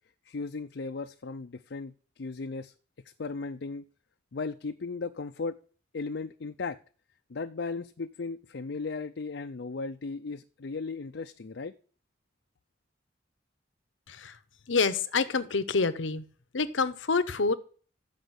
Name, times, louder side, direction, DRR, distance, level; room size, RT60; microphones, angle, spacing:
voice 1, 0.3-2.7 3.2-3.8 4.3-5.6 5.9-6.8 7.3-11.7, left 4 dB, 65° left, 6 dB, 0.5 m, -36 dB
voice 2, 14.7-16.2 16.5-17.5, left 4 dB, 85° left, 13 dB, 0.9 m, -27 dB
13.0 x 5.1 x 8.0 m, 0.43 s
head